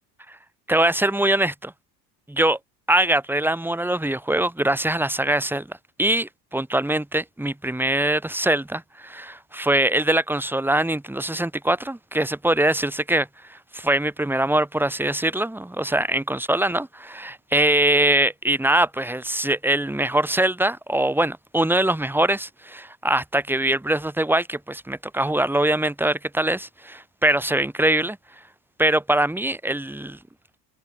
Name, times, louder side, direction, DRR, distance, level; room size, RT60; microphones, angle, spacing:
voice 1, 0.7-1.7 2.3-2.6 2.9-28.2 28.8-30.2, right 1 dB, 5° right, 2.3 m, -23 dB
supercardioid pair, 90°, 48 cm